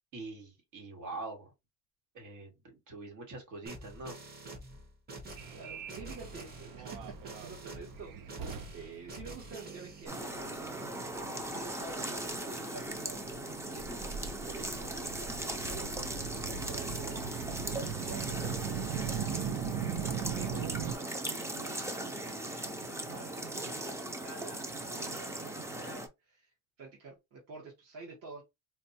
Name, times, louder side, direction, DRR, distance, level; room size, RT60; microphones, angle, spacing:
voice 1, 0.1-1.5 2.1-4.2, right 2 dB, 70° right, 1.7 m, -44 dB
sound 1, 3.6-10.0, right 2 dB, 30° right, 1.0 m, -47 dB
Subway metro underground, 5.4-21.0, right 7 dB, 85° right, 0.6 m, -40 dB
voice 2, 5.5-11.0 11.3-15.9 16.2-26.5 26.8-28.4, right 4 dB, 50° right, 1.2 m, -50 dB
sound 2, 10.1-26.1, right 1 dB, 10° right, 0.4 m, -38 dB
4.2 x 2.2 x 2.7 m
cardioid pair, 170°, 32 cm